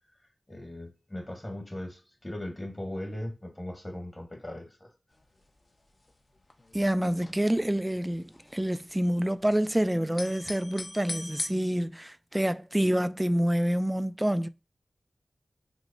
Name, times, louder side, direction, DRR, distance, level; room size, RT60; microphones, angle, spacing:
voice 1, 0.5-4.9, left 1 dB, 30° left, 1.3 m, -38 dB
sound 1, 5.1-5.5 5.8-5.9 6.1-7.7 8.1-9.7 10.0-11.5, left 1 dB, 45° left, 0.7 m, -39 dB
voice 2, 6.7-14.5, right 1 dB, 15° right, 0.3 m, -27 dB
6.1 x 2.1 x 2.5 m
cardioid pair, 55°, 0 cm